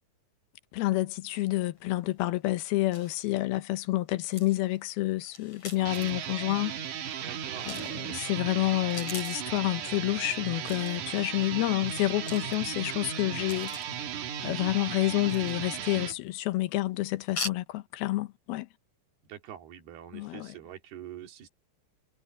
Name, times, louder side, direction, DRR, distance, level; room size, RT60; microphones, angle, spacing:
voice 1, 0.7-6.8 7.7-13.7 14.4-18.7 20.1-20.5, left 18 dB, 80° left, 2.8 m, -29 dB
sound 1, 1.8-2.1 2.6-2.7 2.9-3.4 4.3-6.3 7.5-8.1 8.7-9.5 10.6-11.1 12.2-12.9 13.5-14.0 15.2-15.9 16.2-16.5 17.2-17.5, left 3 dB, 45° left, 8.0 m, -42 dB
sound 2, 5.8-16.1, right 8 dB, 60° right, 2.6 m, -36 dB
voice 2, 7.2-7.8 19.3-21.5, right 10 dB, 80° right, 4.5 m, -45 dB
omnidirectional pair, 4.4 m